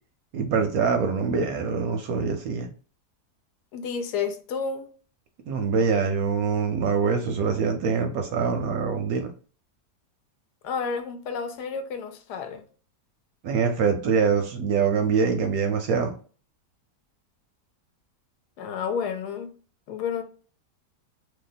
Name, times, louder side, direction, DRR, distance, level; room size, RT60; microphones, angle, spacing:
voice 1, 0.3-2.7 5.5-9.3 13.4-16.1, right 5 dB, 70° right, 0.9 m, -24 dB
voice 2, 3.7-4.9 10.6-12.6 18.6-19.5 19.9-20.2, left 6 dB, 75° left, 1.1 m, -30 dB
2.9 x 2.2 x 3.9 m
omnidirectional pair, 1.8 m